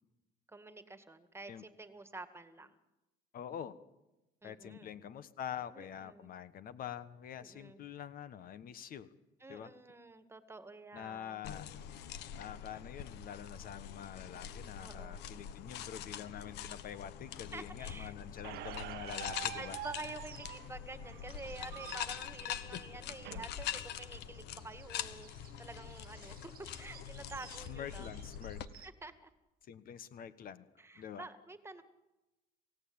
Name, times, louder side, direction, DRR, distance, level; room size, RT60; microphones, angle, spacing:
voice 1, 0.5-2.8 4.4-4.9 5.7-6.4 7.4-7.8 9.4-11.4 14.8-15.3 17.5-18.1 19.5-25.3 25.6-26.4 26.8-28.1 28.8-29.3 30.8-31.8, right 2 dB, 15° right, 11 dB, 2.0 m, -49 dB
voice 2, 3.3-3.8 4.4-9.1 9.5-9.7 10.9-11.7 12.4-19.8 22.7-22.8 27.7-28.9 29.7-30.7 30.9-31.2, left 9 dB, 60° left, 14 dB, 1.3 m, -46 dB
sound 1, 11.4-28.7, left 10 dB, 85° left, 1.4 m, -44 dB
sound 2, 18.3-20.6 20.9-22.5 23.8-29.1, right 12 dB, 60° right, 1.1 m, -59 dB
Squeak, 18.4-23.4, right 16 dB, 85° right, 1.0 m, -47 dB
28.0 x 16.5 x 8.9 m, 1.0 s
cardioid pair, 110°, 17 cm